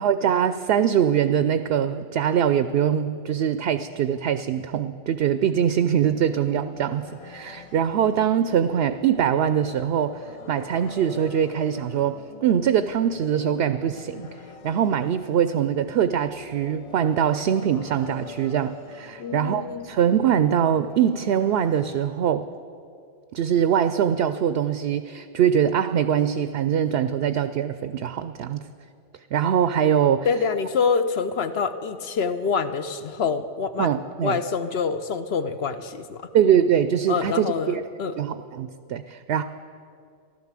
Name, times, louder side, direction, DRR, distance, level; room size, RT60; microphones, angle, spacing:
voice 1, 0.0-14.3 14.6-22.5 23.3-28.6 29.3-30.3 33.8-34.4 36.3-37.8 38.2-39.4, right 9 dB, 65° right, 11 dB, 0.7 m, -23 dB
sound 1, 6.0-22.1, left 6 dB, 40° left, 0.5 m, -44 dB
voice 2, 19.2-19.9 30.2-33.9 34.2-36.2 37.1-38.1, left 5 dB, 60° left, 10 dB, 0.9 m, -26 dB
15.5 x 12.0 x 7.4 m, 2.4 s
omnidirectional pair, 1.2 m